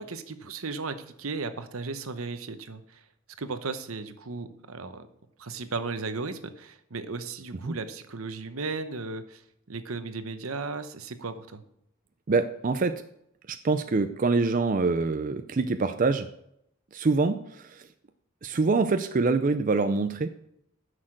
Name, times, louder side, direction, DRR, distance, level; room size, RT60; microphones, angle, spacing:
voice 1, 0.0-3.0 3.4-5.1 5.4-9.4 9.7-11.6, right 4 dB, 80° right, 10 dB, 0.9 m, -35 dB
voice 2, 12.3-13.0 13.5-16.3 16.9-17.9 18.4-20.3, right 3 dB, 40° right, 9 dB, 0.4 m, -25 dB
9.8 x 6.5 x 6.4 m, 0.76 s
head